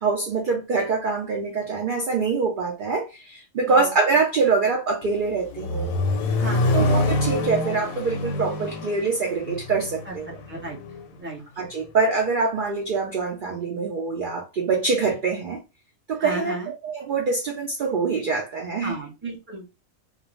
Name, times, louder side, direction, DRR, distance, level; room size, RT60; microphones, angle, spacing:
voice 1, 0.0-5.9 6.7-10.4 11.6-15.6 16.1-19.0, right 4 dB, 65° right, 0.5 m, -24 dB
Accelerating revving vroom, 5.0-11.0, left 2 dB, 85° left, 1.0 m, -26 dB
voice 2, 6.4-6.8 10.1-10.2 10.5-10.8 11.2-11.4 16.2-16.7 18.8-19.8, right 2 dB, 10° right, 0.6 m, -33 dB
2.5 x 2.0 x 3.0 m
omnidirectional pair, 1.4 m